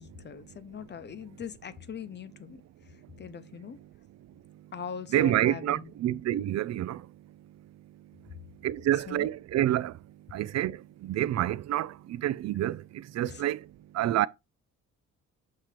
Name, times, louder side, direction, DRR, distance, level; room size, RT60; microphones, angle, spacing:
voice 1, 0.0-3.8 4.7-5.9 8.9-9.3 13.2-13.4, left 7 dB, 35° left, 0.8 m, -42 dB
voice 2, 5.1-7.0 8.6-9.9 10.3-13.6 13.9-14.3, right 13 dB, 60° right, 0.5 m, -28 dB
7.6 x 2.9 x 5.0 m
cardioid pair, 90°, 30 cm